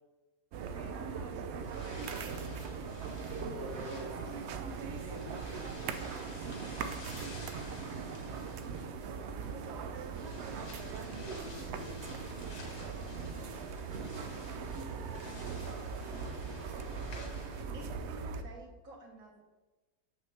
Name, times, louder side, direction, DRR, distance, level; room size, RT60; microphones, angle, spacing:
sound 1, 0.5-18.4, right 5 dB, 80° right, 0.6 m, -40 dB
voice 1, 0.7-2.4 2.8-5.6, right 1 dB, 45° right, -5 dB, 1.5 m, -47 dB
sound 2, 1.6-17.6, left 2 dB, 45° left, 1.4 m, -52 dB
voice 2, 11.1-12.9 13.4-13.8 16.1-18.1, left 3 dB, 75° left, 4 dB, 1.4 m, -53 dB
voice 3, 18.3-19.4, right 3 dB, 60° right, 0 dB, 1.7 m, -51 dB
7.1 x 5.8 x 3.2 m, 1.2 s
omnidirectional pair, 1.7 m